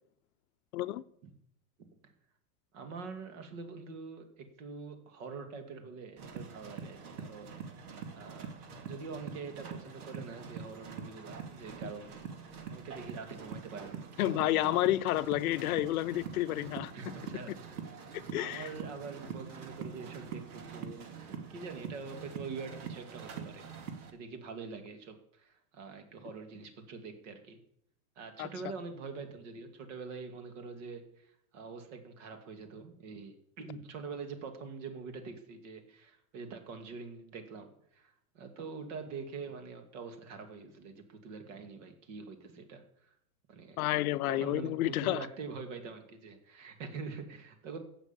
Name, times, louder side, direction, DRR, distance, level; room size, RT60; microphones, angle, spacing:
voice 1, 0.7-1.0 14.2-17.1 18.3-18.7 28.4-28.5 43.8-45.2, left 15 dB, 70° left, 0.7 m, -30 dB
voice 2, 2.7-7.5 8.1-12.1 12.4-14.8 16.9-17.8 18.4-23.7 24.1-27.6 28.2-43.1 43.5-43.8 44.1-47.8, right 4 dB, 55° right, 2.5 m, -45 dB
sound 1, 6.2-24.1, right 6 dB, 75° right, 2.7 m, -44 dB
16.0 x 6.4 x 7.4 m
supercardioid pair, 165°, 45 cm